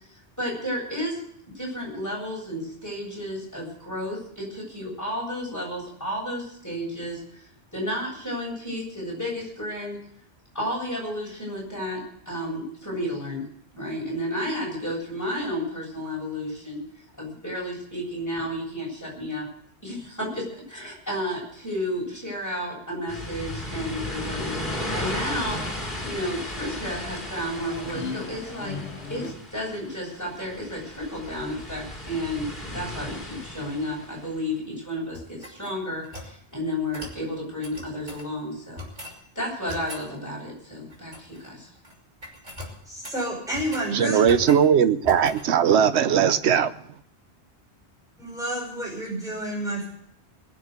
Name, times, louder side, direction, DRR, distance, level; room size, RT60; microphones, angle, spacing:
voice 1, 0.4-1.2 1.5-10.0 10.5-12.0 12.3-13.5 13.7-16.8 17.2-19.5 19.8-24.6 24.9-25.6 26.0-28.7 29.1-38.8 39.3-41.7, equal, 15° left, 7.8 m, -32 dB
sound 1, 23.1-34.3, left 1 dB, 40° left, 3.6 m, -35 dB
sound 2, 23.7-29.3, left 3 dB, 75° left, 2.0 m, -40 dB
sound 3, 35.1-36.4 36.9-37.2 37.6-38.3 38.8-39.2 39.7-40.1 40.9-41.5 41.7-42.0 42.2-43.9 44.2-44.7 45.0-45.5, left 1 dB, 40° right, 3.1 m, -40 dB
voice 2, 42.9-44.2 48.2-49.8, right 1 dB, 5° right, 5.9 m, -30 dB
voice 3, 43.9-46.7, right 8 dB, 75° right, 1.1 m, -19 dB
21.5 x 7.3 x 8.1 m
omnidirectional pair, 1.1 m